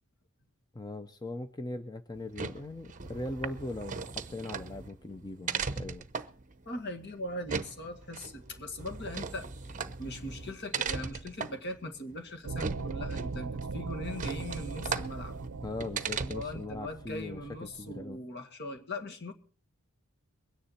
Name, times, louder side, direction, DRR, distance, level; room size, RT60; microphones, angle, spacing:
voice 1, 0.7-6.1 15.6-17.4 17.8-18.2, left 2 dB, 20° left, 8 dB, 0.6 m, -40 dB
sound 1, 2.2-16.6, right 5 dB, 35° right, 0.8 m, -38 dB
voice 2, 6.7-9.5 10.0-15.4 16.2-19.3, left 1 dB, 50° left, 5 dB, 2.0 m, -40 dB
sound 2, 12.4-18.0, right 4 dB, 65° right, 0.6 m, -40 dB
22.5 x 10.0 x 4.3 m, 0.42 s
head